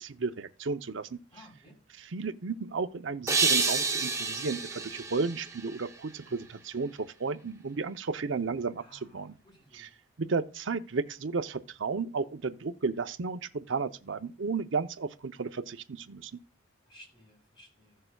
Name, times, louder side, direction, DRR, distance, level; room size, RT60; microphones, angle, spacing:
voice 1, 0.0-1.2 2.0-9.3 9.7-9.9 10.2-16.3, right 4 dB, 70° right, 0.7 m, -33 dB
voice 2, 1.3-1.8 8.8-9.9 16.9-18.0, equal, 25° left, 3.9 m, -56 dB
sound 1, 3.3-6.4, right 4 dB, 15° right, 0.7 m, -29 dB
16.0 x 6.6 x 2.3 m
head